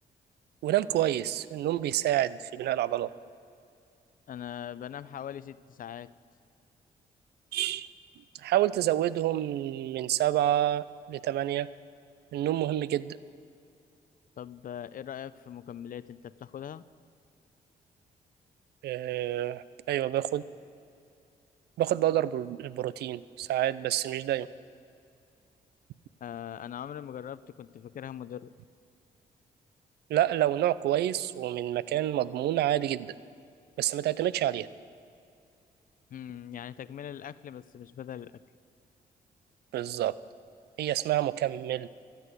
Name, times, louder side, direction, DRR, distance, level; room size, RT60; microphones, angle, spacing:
voice 1, 0.6-3.1 7.5-7.9 8.4-11.7 12.3-13.2 18.8-20.4 21.8-24.5 30.1-33.1 33.8-34.7 39.7-40.1 40.8-41.9, right 13 dB, 80° right, 18 dB, 0.5 m, -28 dB
voice 2, 4.3-6.1 14.4-16.9 26.2-28.5 36.1-38.3, left 9 dB, 55° left, 17 dB, 0.5 m, -41 dB
13.5 x 8.2 x 8.3 m, 2.4 s
supercardioid pair, 60°, 17 cm